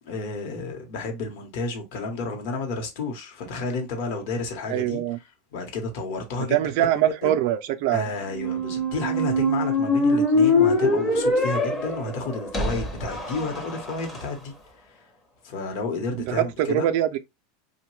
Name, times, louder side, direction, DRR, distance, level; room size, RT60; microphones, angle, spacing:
voice 1, 0.0-5.0 5.5-7.3 7.9-14.5 14.8-15.0 15.4-16.9, left 3 dB, 55° left, 0.9 m, -31 dB
voice 2, 4.7-5.2 6.4-8.1 16.1-17.2, right 12 dB, 55° right, 0.3 m, -23 dB
Squeak, 8.3-14.2, left 1 dB, 10° left, 0.6 m, -23 dB
3.0 x 2.1 x 3.1 m
supercardioid pair, 150°, 0 cm